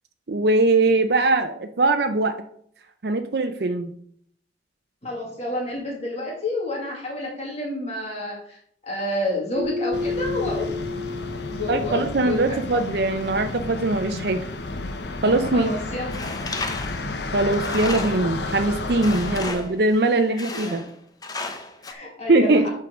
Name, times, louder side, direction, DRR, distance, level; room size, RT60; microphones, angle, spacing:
voice 1, 0.3-2.4 3.0-3.9 11.7-14.4 15.2-15.7 17.3-20.8 22.3-22.6, right 2 dB, 60° right, 6 dB, 0.6 m, -21 dB
voice 2, 5.0-10.7 11.5-12.4 12.7-12.8 15.5-16.1 19.4-19.6 20.3-20.7 21.9-22.7, left 1 dB, 40° left, -2 dB, 2.1 m, -29 dB
Keyboard (musical), 9.5-12.3, left 3 dB, 10° right, 3.2 m, -30 dB
sound 1, 9.9-19.5, left 2 dB, 75° left, 0.9 m, -32 dB
Tools, 16.1-18.4 19.0-19.8 20.4-20.9 21.2-21.9, left 3 dB, 20° left, 0.8 m, -33 dB
8.3 x 4.6 x 6.3 m, 0.65 s
head